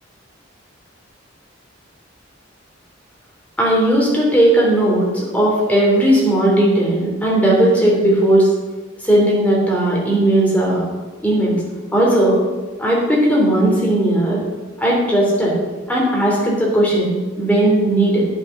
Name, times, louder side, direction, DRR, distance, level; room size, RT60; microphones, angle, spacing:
voice 1, 3.6-8.5 9.0-10.9 11.2-11.6 11.9-12.4 12.8-14.4 14.8-15.6 15.9-18.2, right 1 dB, 10° left, -4 dB, 3.2 m, -16 dB
9.7 x 8.4 x 5.5 m, 1.3 s
head